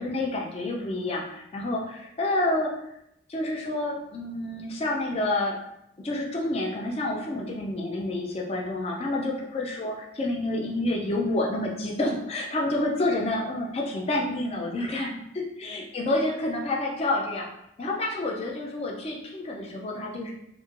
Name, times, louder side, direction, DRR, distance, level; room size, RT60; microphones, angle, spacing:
voice 1, 0.0-2.7 3.3-5.5 6.0-17.5 17.8-20.3, left 2 dB, 30° left, -1 dB, 0.3 m, -29 dB
3.0 x 2.4 x 2.4 m, 0.80 s
head